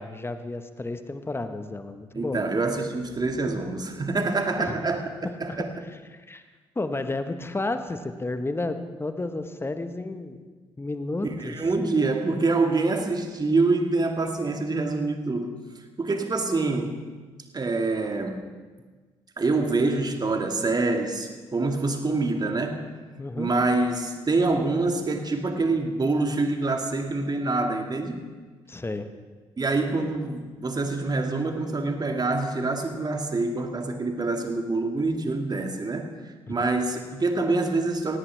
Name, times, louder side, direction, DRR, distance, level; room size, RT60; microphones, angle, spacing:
voice 1, 0.0-2.4 4.6-4.8 5.5-5.6 6.1-6.4 6.7-10.4 10.8-11.5 23.2-23.5 28.7-29.1 36.5-36.6, left 2 dB, 20° left, 9 dB, 1.3 m, -32 dB
voice 2, 2.1-5.0 5.4-5.7 11.4-15.6 16.0-17.0 17.5-18.4 19.4-22.9 23.4-28.2 29.6-36.1 36.5-38.2, right 3 dB, 30° right, 5 dB, 2.0 m, -26 dB
17.5 x 17.5 x 3.4 m, 1.4 s
figure-of-eight pair, 40°, 13 cm